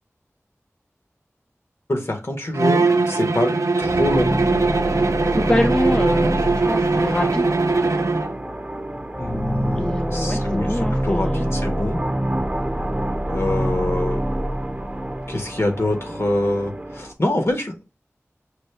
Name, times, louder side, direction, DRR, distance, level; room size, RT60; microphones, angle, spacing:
voice 1, 1.9-4.4 9.2-12.0 13.3-14.3 15.3-17.8, left 1 dB, 55° left, 1.1 m, -25 dB
Bowed string instrument, 2.5-8.4, right 3 dB, 75° right, 0.4 m, -21 dB
sound 1, 3.8-17.1, right 1 dB, 20° right, 0.7 m, -26 dB
voice 2, 5.3-7.6 9.8-11.5, left 1 dB, 20° left, 0.4 m, -25 dB
6.1 x 2.2 x 3.2 m
wide cardioid pair, 40°, 5 cm